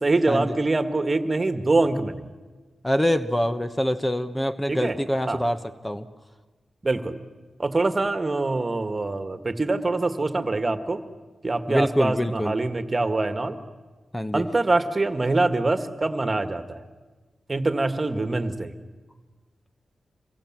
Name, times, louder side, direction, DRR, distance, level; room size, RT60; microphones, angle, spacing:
voice 1, 0.0-2.2 4.7-5.0 5.3-5.4 6.8-7.2 7.6-11.0 11.4-13.6 14.3-16.8 17.5-18.7, right 2 dB, 35° right, 10 dB, 1.9 m, -24 dB
voice 2, 2.8-6.1 11.7-12.6 14.1-14.5, equal, 15° left, 10 dB, 1.2 m, -25 dB
27.0 x 22.5 x 7.5 m, 1.3 s
cardioid pair, 60°, 0 cm